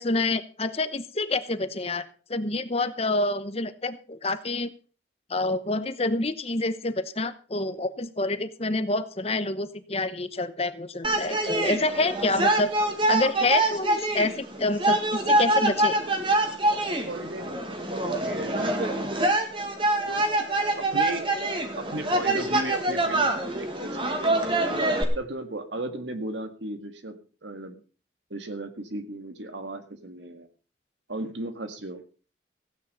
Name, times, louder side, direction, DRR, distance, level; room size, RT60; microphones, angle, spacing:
voice 1, 0.0-4.7 5.3-12.7 13.1-16.0, left 2 dB, 30° left, 12 dB, 0.9 m, -27 dB
sound 1, 11.0-25.0, right 1 dB, 25° right, 2.0 m, -25 dB
voice 2, 16.7-17.5 17.9-19.2 20.1-20.5 20.8-21.3 21.8-24.3 25.2-27.8 28.3-30.5 31.1-32.0, right 2 dB, 70° right, 8 dB, 1.9 m, -36 dB
15.5 x 9.3 x 5.5 m, 0.39 s
head